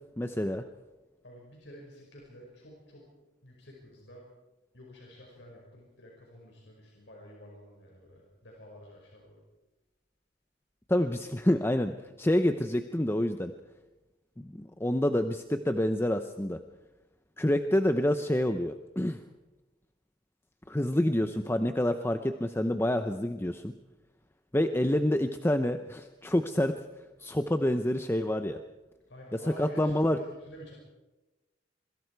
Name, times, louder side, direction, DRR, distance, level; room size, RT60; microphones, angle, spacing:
voice 1, 0.2-0.6 10.9-13.5 14.4-16.6 17.4-19.2 20.7-23.7 24.5-26.7 27.2-28.6 29.3-30.2, left 1 dB, 15° left, 8 dB, 0.7 m, -27 dB
voice 2, 1.2-3.0 3.4-4.3 4.7-9.4 29.1-30.7, equal, 75° left, -1 dB, 5.4 m, -50 dB
26.5 x 23.5 x 4.7 m, 1.1 s
head